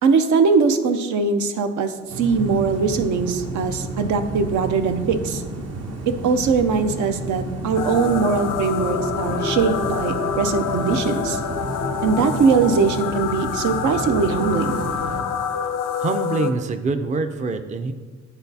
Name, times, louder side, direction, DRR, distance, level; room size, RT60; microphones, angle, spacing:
voice 1, 0.0-5.4 6.1-11.4 12.0-14.8, right 5 dB, 75° right, 7 dB, 0.6 m, -21 dB
sound 1, 2.1-15.2, right 2 dB, 55° right, 1.0 m, -31 dB
sound 2, 7.7-16.5, left 7 dB, 85° left, 0.6 m, -27 dB
voice 2, 16.0-17.9, right 3 dB, 25° right, 8 dB, 0.4 m, -25 dB
9.9 x 4.0 x 2.8 m, 1.4 s
cardioid pair, 90°, 30 cm